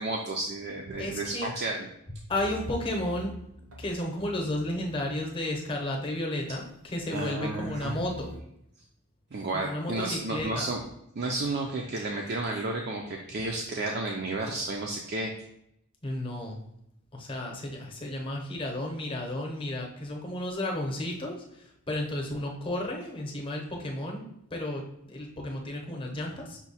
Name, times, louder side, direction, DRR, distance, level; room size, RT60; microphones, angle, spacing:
voice 1, 0.0-1.9 7.1-8.0 9.3-10.8 11.2-15.3, right 2 dB, 45° right, 0 dB, 0.4 m, -32 dB
voice 2, 1.0-1.5 2.3-3.3 3.8-6.6 6.9-8.3 9.6-10.7 16.0-16.6 17.1-21.3 21.9-24.3 24.5-26.6, left 1 dB, 25° left, 0 dB, 0.8 m, -32 dB
sound 1, 2.3-5.3 6.7-8.4, equal, 80° right, 0.9 m, -46 dB
5.7 x 2.2 x 4.1 m, 0.77 s
head